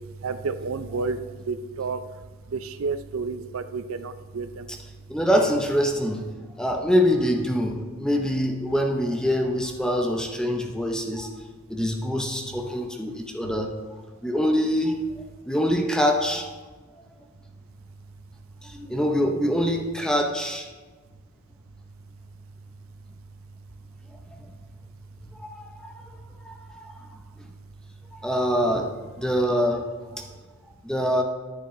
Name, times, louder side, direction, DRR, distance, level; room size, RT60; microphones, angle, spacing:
voice 1, 0.2-1.2 1.5-2.0 2.5-4.6, right 4 dB, 80° right, 12 dB, 0.5 m, -30 dB
voice 2, 5.1-6.3 6.6-11.3 11.7-13.7 14.2-15.0 15.5-16.5 18.6-20.7 24.4-24.5 25.4-25.9 26.4-26.9 28.1-30.2 30.8-31.2, equal, 5° left, 3 dB, 0.6 m, -24 dB
10.0 x 9.4 x 3.1 m, 1.3 s
head